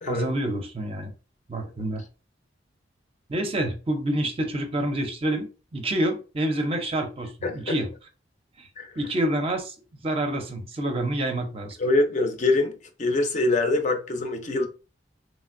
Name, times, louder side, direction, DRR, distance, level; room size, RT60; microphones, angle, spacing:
voice 1, 0.1-1.1 1.5-2.0 3.3-5.5 5.7-7.9 8.6-8.7 9.0-9.7 10.0-11.8, right 1 dB, 30° right, 0.5 m, -27 dB
voice 2, 7.4-7.7 8.8-8.9 11.8-12.7 13.0-14.7, left 2 dB, 40° left, 0.5 m, -24 dB
3.1 x 2.5 x 2.5 m
head